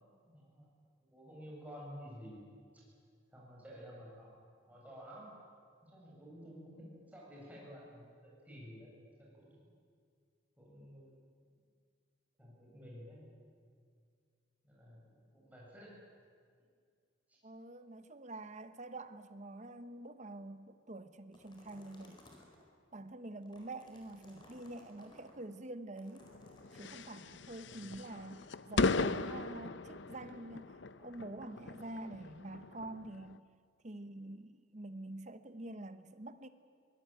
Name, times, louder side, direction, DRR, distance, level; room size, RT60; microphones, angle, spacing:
voice 1, 0.2-0.7 1.1-2.4 3.3-4.3 4.7-5.3 5.8-8.9 9.2-9.7 10.6-11.2 12.4-13.2 14.6-15.0 15.3-15.9 17.3-17.4 27.6-28.0, equal, 10° right, 7.7 m, -52 dB
voice 2, 17.4-22.2 22.9-26.3 26.7-33.4 33.8-36.5, right 2 dB, 40° right, 1.0 m, -47 dB
sound 1, 21.3-22.6 23.3-25.3 26.0-27.1, left 2 dB, 25° left, 4.5 m, -60 dB
sound 2, 26.2-33.4, left 3 dB, 65° left, 0.7 m, -38 dB
23.5 x 18.5 x 9.2 m
head